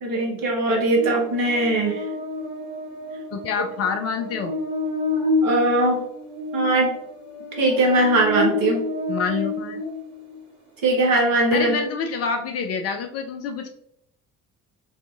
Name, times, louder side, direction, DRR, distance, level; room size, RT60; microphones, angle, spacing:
voice 1, 0.0-2.0 5.4-6.0 6.5-6.9 7.6-8.8 10.8-11.8, right 2 dB, 50° right, 0 dB, 1.2 m, -20 dB
Buzz, 0.9-10.4, left 2 dB, 85° right, 0.9 m, -29 dB
voice 2, 3.3-4.6 9.1-9.8 11.5-13.7, left 6 dB, 40° left, 5 dB, 0.4 m, -27 dB
4.8 x 2.6 x 2.4 m, 0.75 s
figure-of-eight pair, 45°, 42 cm